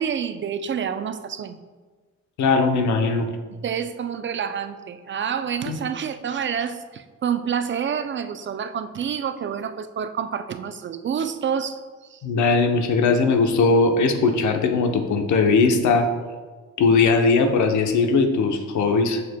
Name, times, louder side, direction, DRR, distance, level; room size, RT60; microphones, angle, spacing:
voice 1, 0.0-1.6 3.5-11.8 12.1-12.2, right 7 dB, 40° right, 10 dB, 0.4 m, -28 dB
voice 2, 2.4-3.3 5.7-5.8 12.2-16.1 16.8-19.2, left 4 dB, 70° left, 5 dB, 0.8 m, -19 dB
6.8 x 6.4 x 2.2 m, 1.4 s
cardioid pair, 75°, 31 cm